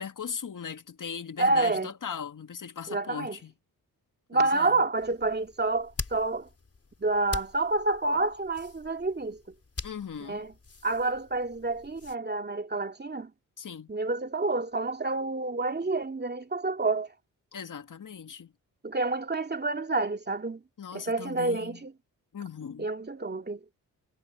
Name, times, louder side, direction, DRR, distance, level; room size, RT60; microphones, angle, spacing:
voice 1, 0.0-3.5 4.3-4.8 9.8-10.4 13.6-13.9 17.5-18.5 20.8-21.8 22.3-22.9, left 7 dB, 55° left, 2.0 m, -39 dB
voice 2, 1.4-1.9 2.9-3.4 4.3-6.5 7.0-9.4 10.3-10.5 10.8-13.3 13.9-17.1 18.8-20.6 20.9-21.9 22.8-23.6, right 3 dB, 25° right, 2.4 m, -28 dB
sound 1, 4.9-12.2, left 4 dB, 40° left, 4.4 m, -43 dB
cardioid pair, 55°, 38 cm